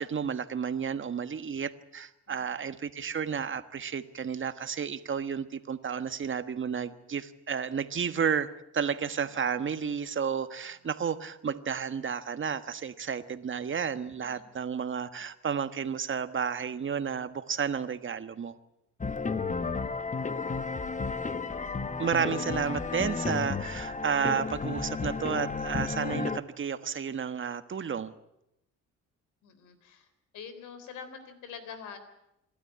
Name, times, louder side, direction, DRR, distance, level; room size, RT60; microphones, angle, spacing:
voice 1, 0.0-8.5 8.7-18.6 22.0-28.1, right 7 dB, 40° right, 11 dB, 1.4 m, -32 dB
voice 2, 2.3-2.6 14.2-14.4 19.1-19.4 29.4-30.1 30.3-32.0, left 6 dB, 85° left, 10 dB, 3.7 m, -45 dB
sound 1, 19.0-26.4, left 4 dB, 25° left, 1.2 m, -32 dB
27.0 x 12.5 x 9.9 m, 0.86 s
cardioid pair, 90°, 30 cm